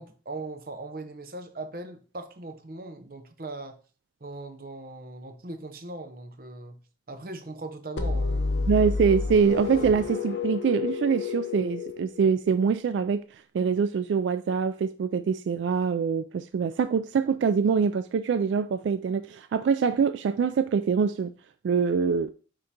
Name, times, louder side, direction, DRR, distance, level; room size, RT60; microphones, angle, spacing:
voice 1, 0.0-3.8 4.2-6.8 7.1-8.6, right 2 dB, 50° right, 0.8 m, -39 dB
sound 1, 8.0-12.7, left 4 dB, 80° left, 0.9 m, -30 dB
voice 2, 8.7-13.2 13.5-21.3 21.6-22.3, right 6 dB, 85° right, 0.3 m, -24 dB
9.6 x 3.8 x 2.8 m
head